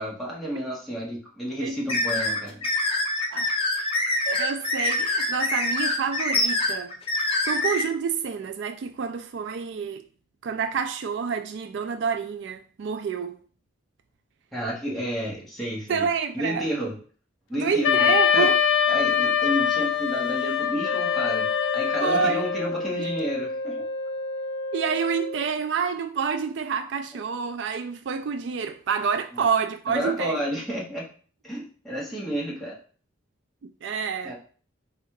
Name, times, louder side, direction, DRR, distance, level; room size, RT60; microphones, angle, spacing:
voice 1, 0.0-2.7 14.5-16.1 16.3-16.9 17.5-18.5 18.9-21.5 21.7-23.7 29.9-31.0 31.4-32.7 34.2-34.3, equal, ahead, 1.3 m, -31 dB
sound 1, 1.9-7.8, left 2 dB, 30° left, 0.8 m, -25 dB
voice 2, 4.3-6.9 7.4-10.0 10.4-13.4 15.9-16.7 17.5-18.6 22.0-22.5 23.0-23.1 24.7-30.4 33.6-34.3, right 6 dB, 65° right, 0.3 m, -28 dB
Wind instrument woodwind instrument, 17.8-22.7, left 9 dB, 80° left, 0.5 m, -23 dB
Wind instrument woodwind instrument 2, 20.8-25.6, left 1 dB, 60° left, 0.8 m, -32 dB
4.2 x 2.4 x 4.6 m
head